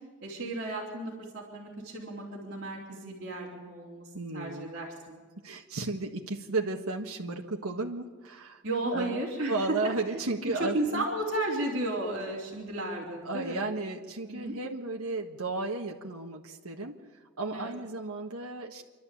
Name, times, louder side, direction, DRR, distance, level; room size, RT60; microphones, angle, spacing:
voice 1, 0.2-5.2 8.6-9.5 10.6-13.6 14.2-14.5 17.5-17.7, right 1 dB, 45° right, -7 dB, 4.0 m, -34 dB
voice 2, 4.1-4.7 5.4-8.6 8.9-9.2 9.5-11.1 13.2-17.0 17.4-18.8, right 3 dB, 85° right, 1 dB, 1.5 m, -34 dB
28.0 x 12.0 x 8.6 m, 1.5 s
head